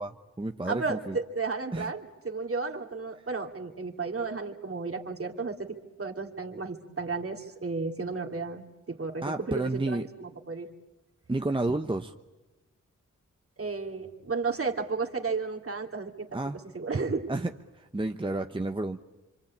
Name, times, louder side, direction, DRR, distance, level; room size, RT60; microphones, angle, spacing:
voice 1, 0.0-1.2 1.7-1.9 9.2-10.0 11.3-12.1 16.3-16.6 17.3-19.0, right 2 dB, 15° right, 6 dB, 0.9 m, -31 dB
voice 2, 0.7-10.7 13.6-16.4 16.7-17.3, right 4 dB, 45° right, 3 dB, 2.6 m, -33 dB
26.5 x 25.5 x 8.6 m, 1.1 s
wide cardioid pair, 70°, 31 cm